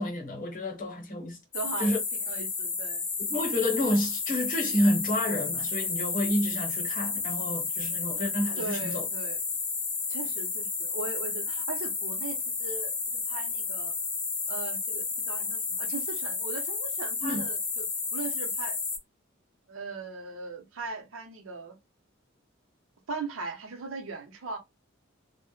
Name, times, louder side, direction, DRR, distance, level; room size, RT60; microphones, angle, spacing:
voice 1, 0.0-1.4 1.8-2.0 3.3-9.0 17.2-17.4, left 1 dB, 40° left, 0.8 m, -29 dB
sound 1, 1.5-19.0, left 4 dB, 20° left, 0.5 m, -32 dB
voice 2, 1.5-2.0 2.3-3.0 8.6-9.4 10.1-13.9 14.5-17.9 18.1-18.8 19.7-21.8 23.1-24.6, right 4 dB, 75° right, 0.6 m, -39 dB
2.1 x 2.0 x 3.0 m
head